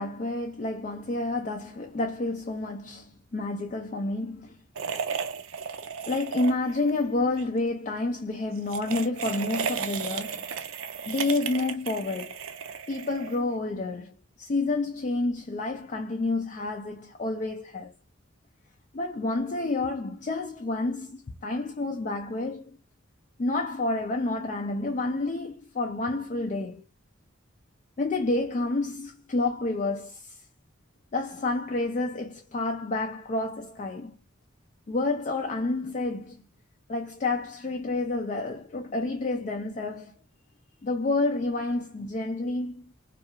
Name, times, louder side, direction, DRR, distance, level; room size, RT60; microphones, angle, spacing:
voice 1, 0.0-4.6 6.1-10.5 11.1-12.4 12.9-17.9 18.9-22.8 23.4-26.8 28.0-30.4 31.1-34.2 34.9-36.4 36.9-40.1 40.8-42.7, left 2 dB, 35° left, 0.3 m, -29 dB
sound 1, 4.8-7.0 7.2-7.5 8.6-13.5, right 6 dB, 85° right, 0.5 m, -34 dB
2.4 x 2.3 x 2.7 m
head